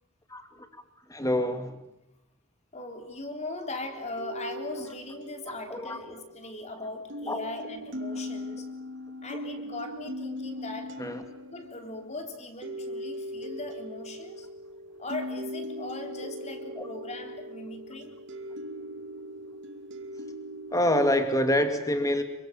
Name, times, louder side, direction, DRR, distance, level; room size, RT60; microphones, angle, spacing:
voice 1, 1.1-1.8 5.7-6.0 7.3-7.4 11.0-11.2 16.8-16.9 20.7-22.2, left 1 dB, 15° left, 2.5 m, -26 dB
voice 2, 2.7-8.7 9.2-11.1 11.5-14.5 14.9-18.2, left 2 dB, 30° left, 3.7 m, -39 dB
sound 1, 3.8-6.7 7.1-21.3, equal, 55° right, 2.5 m, -40 dB
27.5 x 24.0 x 7.5 m
head